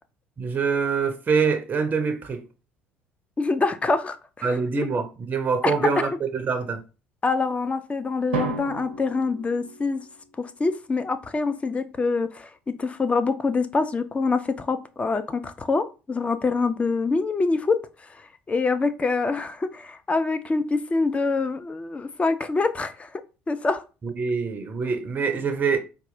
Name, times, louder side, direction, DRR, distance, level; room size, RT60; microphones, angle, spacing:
voice 1, 0.4-2.4 4.4-6.8 24.0-25.8, right 5 dB, 30° right, 0.5 m, -25 dB
voice 2, 3.4-4.6 7.2-10.0 10.4-12.5 12.8-17.8 18.1-23.2 23.5-23.8, left 3 dB, 20° left, 0.4 m, -25 dB
Drum, 8.3-10.3, right 4 dB, 80° right, 0.6 m, -33 dB
4.0 x 2.2 x 2.6 m
figure-of-eight pair, 60°, 6 cm